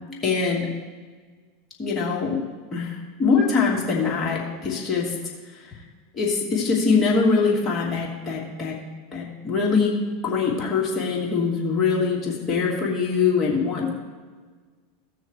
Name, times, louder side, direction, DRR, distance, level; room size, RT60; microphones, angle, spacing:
voice 1, 0.2-0.7 1.8-2.4 2.7-5.1 6.1-8.8 9.1-10.0 10.2-13.9, left 5 dB, 25° left, -3 dB, 3.0 m, -23 dB
16.5 x 6.4 x 3.3 m, 1.5 s
hypercardioid pair, 90°, 0 cm